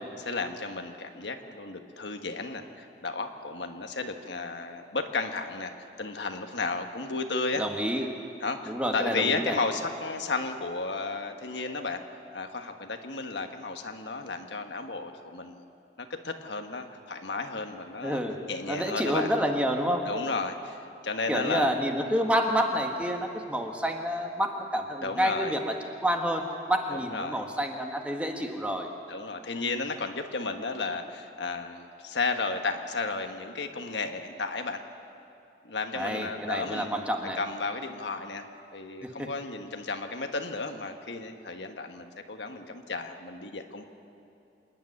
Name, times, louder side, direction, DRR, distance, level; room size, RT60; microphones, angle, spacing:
voice 1, 0.2-5.7 6.0-7.6 8.4-12.0 12.3-15.6 16.0-18.2 18.5-19.3 20.0-21.7 25.0-25.5 26.9-27.4 29.1-34.8 35.6-37.1 37.3-38.4 38.7-43.8, left 3 dB, 85° left, 5 dB, 1.4 m, -33 dB
voice 2, 7.6-8.1 8.7-9.6 18.0-18.4 18.7-20.1 21.3-25.7 26.0-28.9 35.9-37.4 39.0-39.3, equal, 5° right, 2 dB, 1.4 m, -28 dB
26.5 x 10.5 x 9.6 m, 2.6 s
head